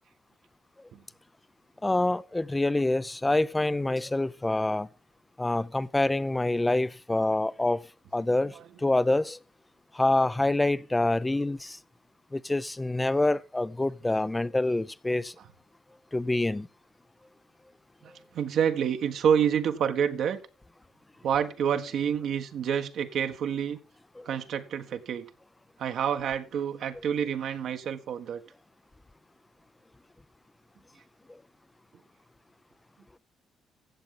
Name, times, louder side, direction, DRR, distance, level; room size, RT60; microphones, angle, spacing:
voice 1, 1.8-4.9 5.4-7.8 8.1-8.5 8.8-9.4 9.9-11.8 12.3-15.3 16.1-16.7 24.2-24.3, left 2 dB, 15° left, 0.5 m, -26 dB
voice 2, 18.0-20.4 21.2-23.8 24.2-25.2 25.8-28.4, right 8 dB, 70° right, 1.4 m, -28 dB
15.0 x 8.1 x 3.8 m
cardioid pair, 90°, 0 cm